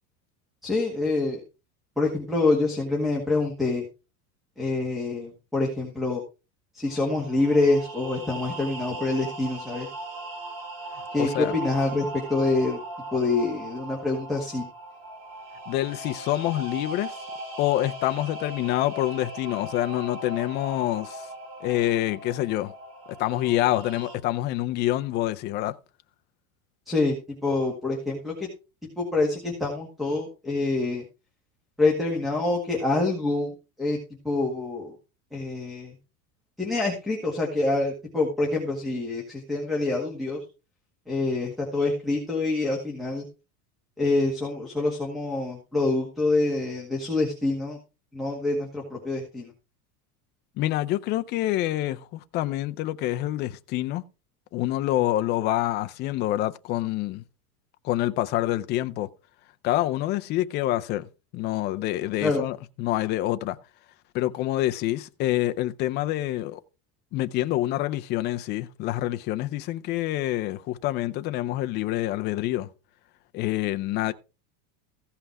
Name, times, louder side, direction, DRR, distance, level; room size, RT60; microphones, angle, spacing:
voice 1, 0.6-1.4 2.0-3.8 4.6-6.2 6.7-9.9 11.1-12.8 13.1-14.7 26.9-28.5 29.0-31.0 31.8-33.5 33.8-34.0 34.2-34.9 35.3-35.9 36.6-40.4 41.1-43.3 44.0-47.8 48.1-49.5 62.2-62.4, left 2 dB, ahead, 1.8 m, -26 dB
sound 1, 6.9-24.2, right 1 dB, 45° right, 3.2 m, -39 dB
voice 2, 10.9-11.5 15.7-17.1 17.6-21.2 21.6-22.7 23.2-25.7 50.6-54.0 54.5-57.2 57.8-59.1 59.6-61.1 61.3-63.6 64.1-66.6 67.1-72.7 73.3-74.1, left 15 dB, 25° left, 0.4 m, -27 dB
15.0 x 5.7 x 4.7 m
supercardioid pair, 170°, 42 cm